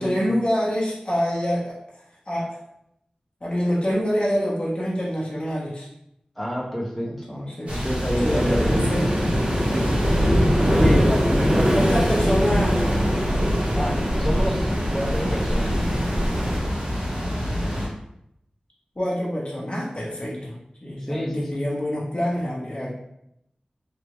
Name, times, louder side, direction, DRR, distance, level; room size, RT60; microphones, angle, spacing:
voice 1, 0.0-1.8 2.3-2.6 3.4-5.9 7.1-7.8 8.2-9.3 11.7-12.8 18.9-20.5 20.8-22.9, equal, 45° left, -6 dB, 1.2 m, -26 dB
voice 2, 6.4-7.1 7.7-8.8 9.7-9.9 10.7-11.7 13.7-15.9 21.0-21.5, equal, 5° left, -6 dB, 0.9 m, -28 dB
sound 1, 7.7-17.9, equal, 55° right, 1.3 m, -26 dB
Waves surf, 8.2-16.6, equal, 40° right, 0.9 m, -23 dB
3.5 x 2.8 x 3.1 m, 0.79 s
wide cardioid pair, 45°, 3 cm